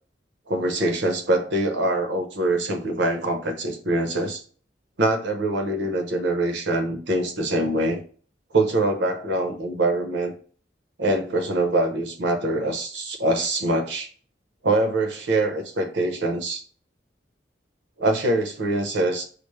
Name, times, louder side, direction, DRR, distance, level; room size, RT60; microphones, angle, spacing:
voice 1, 0.5-4.4 5.0-8.0 8.5-10.3 11.0-14.1 14.6-16.6 18.0-19.2, right 2 dB, 80° right, 4 dB, 0.8 m, -24 dB
5.0 x 2.1 x 3.1 m, 0.42 s
head